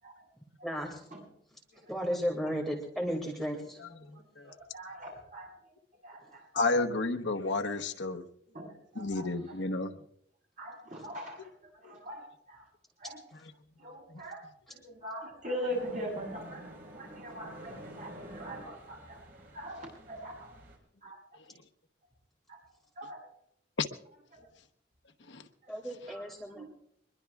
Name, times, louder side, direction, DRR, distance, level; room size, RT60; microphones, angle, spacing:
voice 1, 0.6-1.0 1.9-3.8 25.7-26.6, equal, ahead, 0 dB, 2.2 m, -34 dB
voice 2, 4.1-5.5 6.0-6.7 8.5-9.6 10.6-12.7 13.0-13.2 13.8-16.6 17.0-19.3 19.5-20.6 21.0-21.2 22.5-22.6 23.0-23.3 25.6-25.7 26.1-26.3 26.6-26.7, equal, 45° right, -2 dB, 7.6 m, -42 dB
voice 3, 6.5-8.2 9.0-9.9 11.8-11.9 23.8-23.9 25.3-25.4, left 3 dB, 85° left, 6 dB, 1.0 m, -31 dB
sound 1, 15.7-20.8, right 1 dB, 60° right, 4.4 m, -48 dB
23.0 x 22.0 x 2.4 m, 0.69 s
head